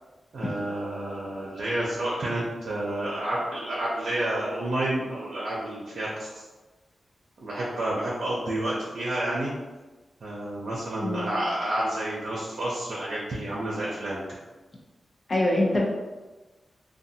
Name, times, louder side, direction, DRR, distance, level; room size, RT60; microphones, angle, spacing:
voice 1, 0.3-6.4 7.4-9.5 10.2-14.2, right 1 dB, 75° right, -6 dB, 0.5 m, -30 dB
voice 2, 11.0-11.4 15.3-15.8, left 1 dB, 40° left, -2 dB, 0.6 m, -24 dB
2.5 x 2.3 x 2.7 m, 1.2 s
cardioid pair, 70°, 0 cm